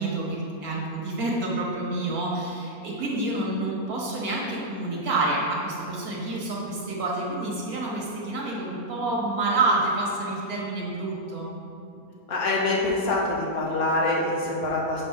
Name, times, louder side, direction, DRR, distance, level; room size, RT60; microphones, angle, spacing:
voice 1, 0.0-11.5, right 2 dB, 85° right, -4 dB, 1.9 m, -28 dB
voice 2, 12.3-15.0, left 2 dB, 90° left, -4 dB, 1.7 m, -25 dB
7.8 x 3.6 x 5.7 m, 2.6 s
omnidirectional pair, 1.5 m